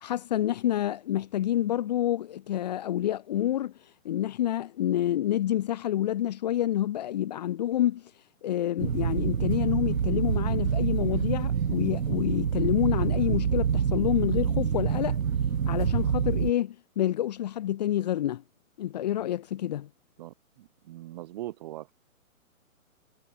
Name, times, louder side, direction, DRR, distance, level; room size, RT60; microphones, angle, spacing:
voice 1, 0.0-3.7 4.1-8.1 8.4-15.2 15.7-18.4 18.8-19.9, left 12 dB, 30° left, 1.7 m, -28 dB
sound 1, 8.8-16.5, right 7 dB, 70° right, 2.1 m, -26 dB
voice 2, 20.2-21.9, right 15 dB, 30° right, 4.6 m, -41 dB
hypercardioid pair, 165°, 43 cm